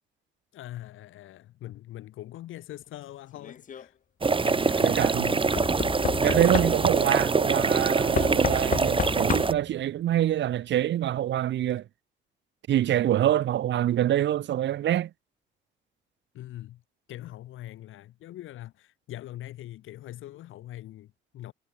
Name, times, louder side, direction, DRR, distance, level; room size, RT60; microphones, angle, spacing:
voice 1, 0.5-4.0 4.4-5.6 16.3-16.8 17.1-21.5, left 14 dB, 85° left, 7.0 m, -42 dB
Knock / Wood, 3.3-3.8 5.6-7.1 8.1-9.7 10.8-10.9 11.1-11.2, left 8 dB, 40° left, 0.7 m, -31 dB
sound 1, 4.2-9.5, right 4 dB, 25° right, 1.9 m, -24 dB
voice 2, 4.8-5.3 6.2-11.9 12.7-15.1, right 12 dB, 65° right, 0.9 m, -25 dB
cardioid pair, 90°, 20 cm